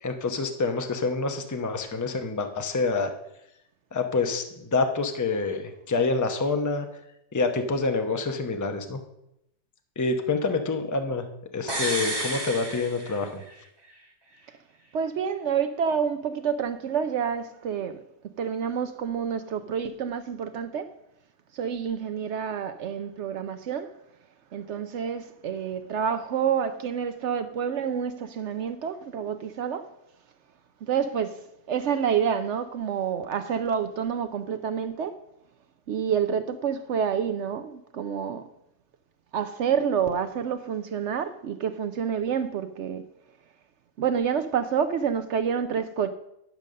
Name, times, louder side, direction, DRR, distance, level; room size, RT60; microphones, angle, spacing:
voice 1, 0.0-3.1 3.9-6.9 7.3-9.0 10.0-11.2 11.5-13.4, left 3 dB, 20° left, 0.6 m, -27 dB
sound 1, 11.7-13.6 13.9-14.0, right 1 dB, 15° right, 1.4 m, -31 dB
voice 2, 14.9-18.0 18.4-20.9 21.5-24.0 24.5-29.9 30.8-35.2 35.9-38.4 39.3-43.1 44.0-46.1, right 7 dB, 70° right, 0.6 m, -28 dB
10.5 x 5.3 x 6.4 m
omnidirectional pair, 1.7 m